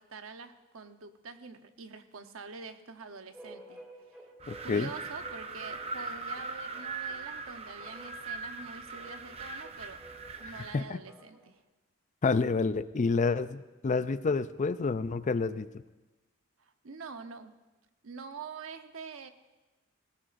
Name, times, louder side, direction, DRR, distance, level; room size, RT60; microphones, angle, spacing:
voice 1, 0.0-3.8 4.1-4.3 4.6-10.0 10.4-11.6 16.6-17.5 18.0-19.3, right 5 dB, 85° right, 7 dB, 0.9 m, -46 dB
sound 1, 3.3-11.6, right 1 dB, 5° right, 2.4 m, -53 dB
Wind, 4.4-10.8, right 4 dB, 30° right, 0.7 m, -40 dB
voice 2, 4.5-4.9 10.7-11.0 12.2-15.7, left 4 dB, 35° left, 13 dB, 0.4 m, -28 dB
19.5 x 17.5 x 2.6 m, 1.1 s
head